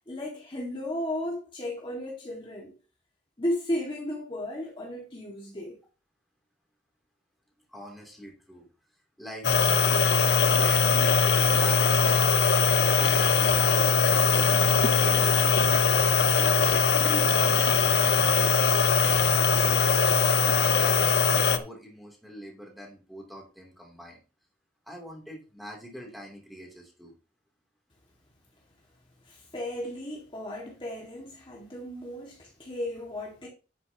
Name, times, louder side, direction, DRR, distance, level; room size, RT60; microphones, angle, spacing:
voice 1, 0.1-2.7 3.4-5.8 29.2-33.5, left 1 dB, 30° left, 2.0 m, -34 dB
voice 2, 7.7-8.7 9.2-9.5 9.8-10.2 10.4-12.2 12.5-15.6 15.8-18.5 19.5-19.9 20.5-24.2 24.9-27.1, equal, ahead, 3.1 m, -43 dB
sound 1, 9.4-21.6, left 5 dB, 70° left, 0.8 m, -21 dB
10.5 x 8.8 x 2.9 m
head